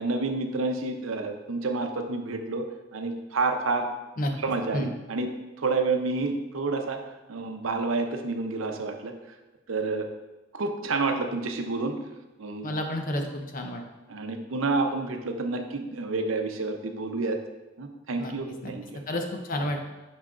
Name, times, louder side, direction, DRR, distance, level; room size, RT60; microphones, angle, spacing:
voice 1, 0.0-2.6 2.9-3.9 4.4-5.3 5.6-7.0 7.3-9.1 9.7-10.1 10.5-11.9 12.4-12.7 14.1-17.4 17.8-19.0 19.6-19.7, right 3 dB, 75° right, 5 dB, 0.6 m, -29 dB
voice 2, 12.6-13.8 18.2-18.3 18.6-18.7 19.1-19.8, left 1 dB, 45° left, 3 dB, 0.7 m, -30 dB
6.3 x 6.0 x 2.5 m, 1.1 s
head